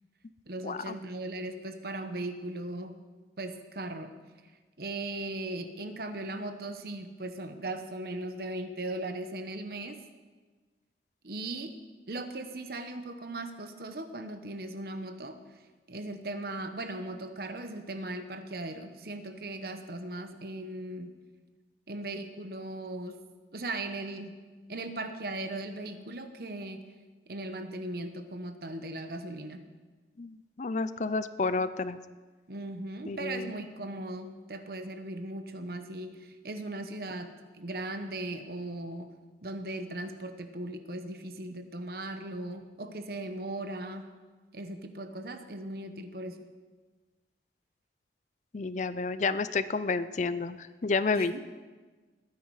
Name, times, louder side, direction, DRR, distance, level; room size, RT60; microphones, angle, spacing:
voice 1, 0.5-3.0 3.4-4.1 4.8-10.0 11.2-11.8 12.1-15.6 15.9-21.1 21.9-23.2 23.5-24.4 24.7-26.9 27.3-29.7 32.5-39.2 39.4-44.1 44.5-46.5 51.1-51.4, right 2 dB, 60° right, 8 dB, 1.1 m, -38 dB
voice 2, 30.2-32.0 33.1-33.5 48.5-51.4, left 4 dB, 40° left, 14 dB, 0.5 m, -30 dB
20.5 x 9.4 x 4.8 m, 1.3 s
head